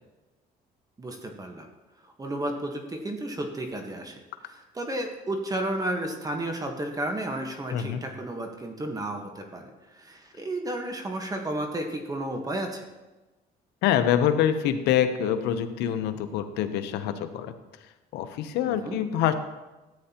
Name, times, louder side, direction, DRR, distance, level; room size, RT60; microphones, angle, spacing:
voice 1, 1.0-1.7 2.0-4.2 4.5-12.9 18.7-19.0, right 1 dB, 20° right, 4 dB, 1.3 m, -32 dB
voice 2, 7.7-8.0 13.8-17.5 18.1-19.3, left 10 dB, 90° left, 9 dB, 0.8 m, -25 dB
13.5 x 9.0 x 2.9 m, 1.1 s
cardioid pair, 110°, 17 cm